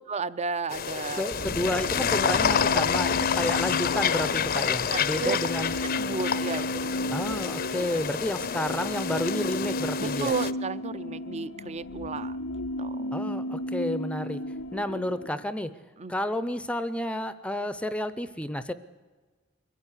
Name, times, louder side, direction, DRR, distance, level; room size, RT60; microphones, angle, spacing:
voice 1, 0.1-1.3 4.9-5.4 6.0-7.2 10.0-12.4 12.8-13.1 16.0-16.1, right 4 dB, 35° right, 16 dB, 0.6 m, -33 dB
sound 1, 0.7-10.5, left 7 dB, 45° left, 0.6 m, -28 dB
voice 2, 1.2-5.7 7.1-10.3 13.1-14.4 14.7-15.7 16.1-18.7, left 1 dB, 5° left, 13 dB, 0.6 m, -31 dB
sound 2, 1.3-12.1, equal, 65° right, 2.1 m, -45 dB
sound 3, 1.5-15.3, left 1 dB, 85° left, 0.7 m, -34 dB
23.0 x 14.5 x 9.8 m, 1.4 s
head